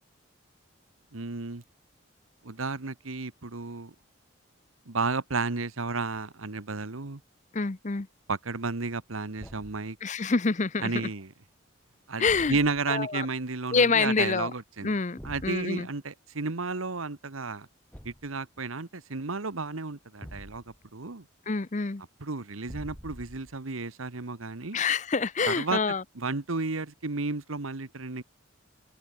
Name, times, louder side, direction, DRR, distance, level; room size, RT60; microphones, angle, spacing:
voice 1, 1.1-1.6 2.4-3.9 4.8-7.2 8.3-10.1 10.8-11.3 12.1-15.0 15.2-17.7 18.0-20.6 20.9-21.3 22.2-24.8 25.4-25.8 26.1-28.2, right 3 dB, 90° right, 1.4 m, -32 dB
voice 2, 7.5-8.1 10.0-10.9 12.2-12.6 12.9-13.3 13.7-14.5 14.8-15.9 21.5-22.0 24.7-26.0, left 4 dB, 35° left, 0.7 m, -26 dB
Thump thud, 9.4-9.9 12.2-12.9 15.2-15.6 17.9-18.4 20.2-20.9 22.6-23.6, equal, 10° left, 4.1 m, -45 dB
head